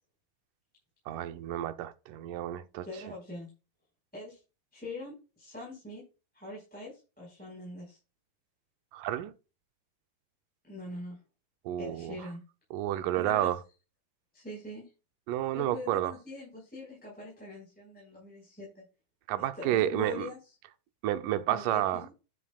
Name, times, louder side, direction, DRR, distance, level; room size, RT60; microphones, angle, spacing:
voice 1, 1.1-2.9 8.9-9.3 11.7-12.2 12.7-13.6 15.3-16.1 19.3-20.3 21.0-22.0, right 13 dB, 85° right, 2.3 m, -30 dB
voice 2, 2.8-3.5 4.1-4.4 4.7-6.0 6.3-8.0 10.6-11.2 11.8-12.4 13.2-13.5 14.3-14.9 15.5-18.8 19.6-20.4 21.5-22.1, left 2 dB, 5° left, 4.5 m, -42 dB
11.0 x 9.9 x 2.4 m
omnidirectional pair, 3.7 m